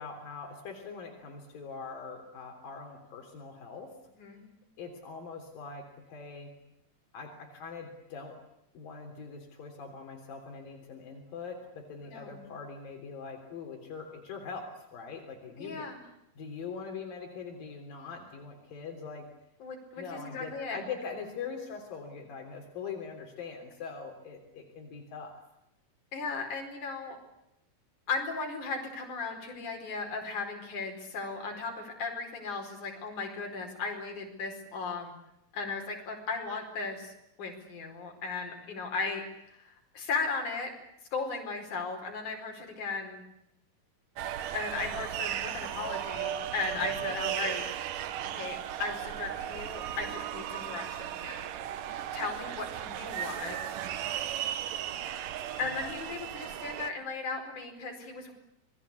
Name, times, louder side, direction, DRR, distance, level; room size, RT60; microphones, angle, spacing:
voice 1, 0.0-4.0 4.8-6.5 7.1-8.4 8.8-15.9 16.4-19.3 20.0-25.4 46.8-47.0, left 5 dB, 80° left, 2 dB, 5.2 m, -42 dB
voice 2, 4.2-4.5 12.0-12.4 15.6-16.0 19.6-20.8 26.1-27.2 28.1-35.2 35.5-37.1 37.4-40.7 41.1-43.2 44.5-47.7 48.3-51.5 52.1-53.7 55.6-58.3, left 4 dB, 60° left, 2 dB, 6.2 m, -36 dB
sound 1, 44.2-56.9, right 11 dB, 75° right, 2.8 m, -36 dB
27.5 x 21.5 x 8.3 m, 0.82 s
omnidirectional pair, 4.0 m